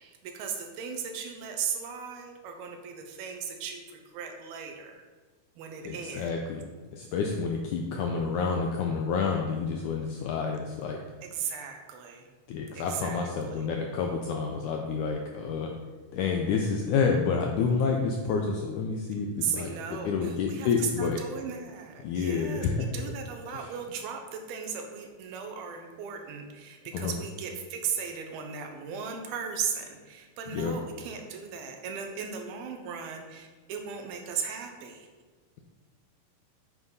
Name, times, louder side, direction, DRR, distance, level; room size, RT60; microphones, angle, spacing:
voice 1, 0.0-5.0 5.6-6.3 11.2-12.3 12.7-13.6 19.4-35.1, right 7 dB, 85° right, 4 dB, 2.9 m, -37 dB
voice 2, 5.8-6.6 6.9-11.0 12.5-15.7 16.1-21.2 22.0-22.9 23.5-23.7 26.9-27.1 30.5-30.8, left 5 dB, 80° left, 2 dB, 1.8 m, -29 dB
8.2 x 7.4 x 4.0 m, 1.4 s
omnidirectional pair, 4.3 m